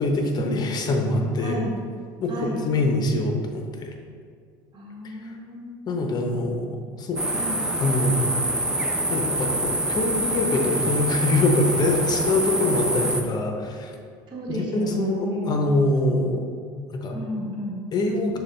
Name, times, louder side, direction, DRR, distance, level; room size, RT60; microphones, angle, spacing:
voice 1, 0.0-1.6 2.2-3.9 5.0-5.2 5.9-6.7 7.0-7.2 7.8-8.3 9.1-14.0 14.5-16.4 16.9-17.2 17.9-18.4, left 2 dB, 40° left, 3 dB, 0.7 m, -24 dB
voice 2, 1.4-1.8 2.3-2.6 4.7-5.7 7.3-7.7 14.3-15.6 17.1-17.8, equal, 45° right, -3 dB, 1.2 m, -32 dB
sound 1, 7.2-13.2, right 1 dB, 10° right, 0.5 m, -26 dB
6.4 x 2.3 x 3.2 m, 2.2 s
supercardioid pair, 85°, 11 cm